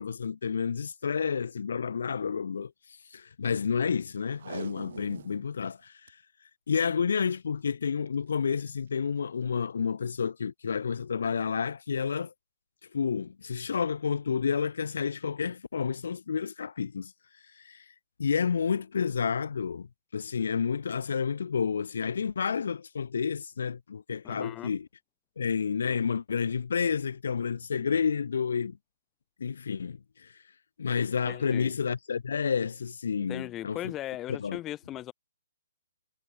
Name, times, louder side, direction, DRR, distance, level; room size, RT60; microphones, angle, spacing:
voice 1, 0.0-2.7 3.1-6.2 6.7-12.3 12.9-17.1 17.5-17.9 18.2-19.9 20.1-24.9 25.4-28.8 29.4-30.4 30.8-33.9 34.4-34.6, left 6 dB, 70° left, 2.8 m, -30 dB
Packing tape duct tape, 4.3-5.4 5.8-5.9 6.1-6.2 6.7-7.1 8.1-8.3 8.9-9.0, right 7 dB, 60° right, 4.5 m, -43 dB
voice 2, 24.2-24.7 31.3-31.8 33.2-35.1, left 14 dB, 15° left, 4.7 m, -38 dB
hypercardioid pair, 155°, 0 cm